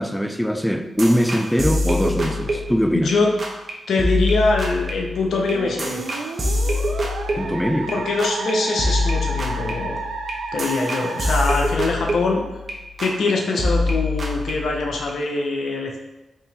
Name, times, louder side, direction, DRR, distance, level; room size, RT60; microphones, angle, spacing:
voice 1, 0.0-3.1 7.4-7.9, equal, 5° left, 0.4 m, -21 dB
sound 1, 1.0-3.1 3.4-3.7 4.0-7.9 8.2-8.5 8.8-12.7 13.0-13.3 13.6-15.1, left 1 dB, 45° right, 0.8 m, -25 dB
voice 2, 2.9-3.3 3.9-6.0 7.9-10.0 10.5-12.4 13.0-16.0, left 3 dB, 75° left, 0.5 m, -23 dB
Musical instrument, 5.5-12.4, right 4 dB, 85° right, 0.4 m, -32 dB
3.7 x 2.7 x 4.0 m
cardioid pair, 50°, 0 cm